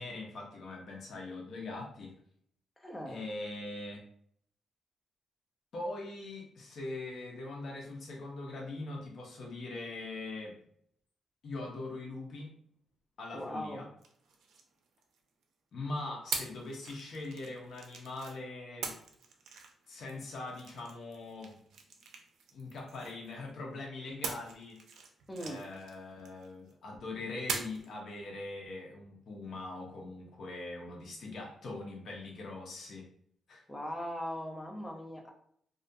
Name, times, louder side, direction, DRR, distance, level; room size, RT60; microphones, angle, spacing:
voice 1, 0.0-2.1 3.1-4.0 5.7-10.6 11.4-12.5 13.2-13.9 15.7-19.0 19.9-21.6 22.5-24.8 25.4-33.1 33.5-33.6, left 2 dB, 60° left, -2 dB, 0.6 m, -42 dB
voice 2, 2.8-3.2 13.3-13.8 25.3-25.6 33.7-35.3, equal, 10° left, 1 dB, 0.5 m, -39 dB
sound 1, 14.0-15.4 16.3-18.4 18.8-23.5 24.2-26.7 27.5-27.9, right 5 dB, 85° right, 0.4 m, -43 dB
2.4 x 2.2 x 2.5 m, 0.65 s
cardioid pair, 135°, 0 cm